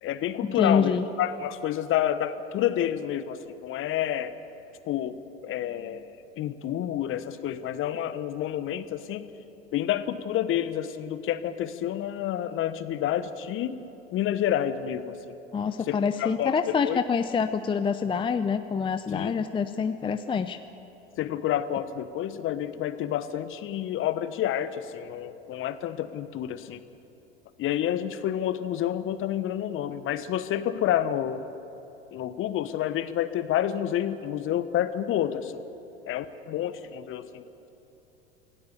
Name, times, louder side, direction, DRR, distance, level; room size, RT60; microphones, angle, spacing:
voice 1, 0.0-4.3 4.9-9.3 9.7-13.8 14.1-15.3 15.9-17.0 19.1-19.3 21.2-26.8 27.6-31.5 32.1-35.6 36.1-37.4, left 11 dB, 40° left, 13 dB, 1.2 m, -29 dB
voice 2, 0.6-1.0 15.5-20.6, left 6 dB, 15° left, 10 dB, 0.6 m, -26 dB
27.0 x 17.5 x 6.9 m, 3.0 s
figure-of-eight pair, 80°, 32 cm